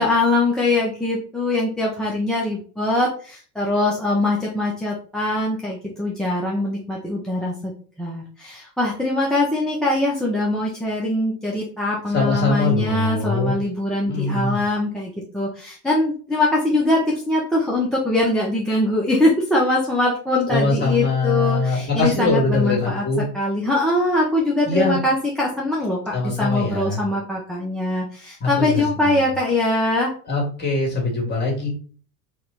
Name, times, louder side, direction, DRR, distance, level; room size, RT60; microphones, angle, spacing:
voice 1, 0.0-7.7 8.0-23.1 23.3-30.1, left 2 dB, ahead, -5 dB, 0.5 m, -22 dB
voice 2, 12.1-13.6 14.1-14.6 20.5-23.2 24.7-25.0 26.1-27.0 28.4-29.3 30.3-31.7, left 3 dB, 20° left, -1 dB, 1.8 m, -22 dB
4.2 x 2.2 x 3.7 m, 0.42 s
figure-of-eight pair, 80°, 47 cm